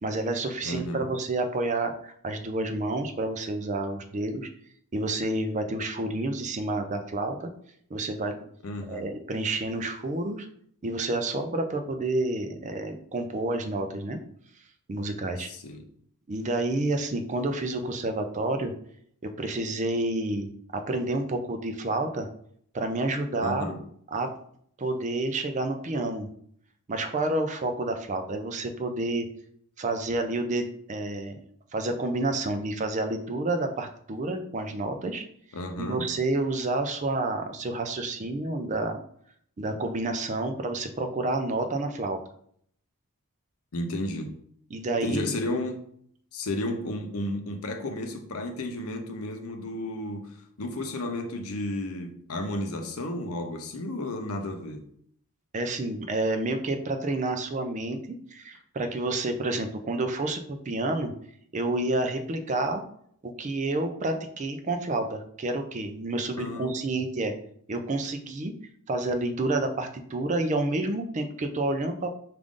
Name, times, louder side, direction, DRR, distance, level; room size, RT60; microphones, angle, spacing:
voice 1, 0.0-4.5 4.9-7.5 7.9-8.3 8.9-10.5 10.8-14.2 14.9-15.5 16.3-18.7 19.2-22.3 22.7-23.7 24.1-24.3 24.8-26.3 26.9-29.3 29.8-31.4 31.7-35.2 35.8-39.0 39.6-42.2 44.7-45.3 55.5-61.1 61.5-62.8 63.2-67.3 67.7-68.5 68.9-72.1, right 2 dB, 35° right, 0.4 m, -29 dB
voice 2, 0.6-1.1 8.6-9.1 15.4-15.9 23.4-23.8 35.5-36.1 43.7-44.4 45.0-45.8 46.3-54.8 66.4-66.8, left 1 dB, 75° left, 0.7 m, -33 dB
4.9 x 2.5 x 3.6 m
head